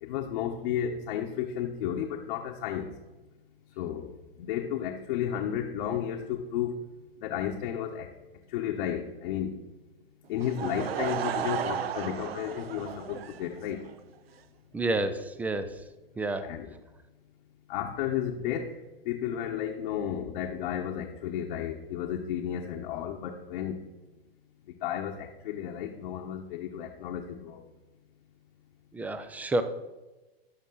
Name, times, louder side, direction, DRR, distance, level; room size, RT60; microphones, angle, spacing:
voice 1, 0.0-2.9 3.8-4.1 4.4-6.8 7.2-8.1 8.5-9.5 10.3-13.8 16.4-16.7 17.7-18.7 19.1-23.8 24.8-27.6, left 9 dB, 55° left, 0 dB, 1.1 m, -33 dB
Laughter / Crowd, 10.4-13.9, right 9 dB, 75° right, 0.7 m, -34 dB
voice 2, 14.7-15.7 16.2-16.5 28.9-29.6, right 2 dB, 5° right, 11 dB, 0.4 m, -29 dB
11.5 x 6.0 x 3.8 m, 1.1 s
hypercardioid pair, 115°, 30 cm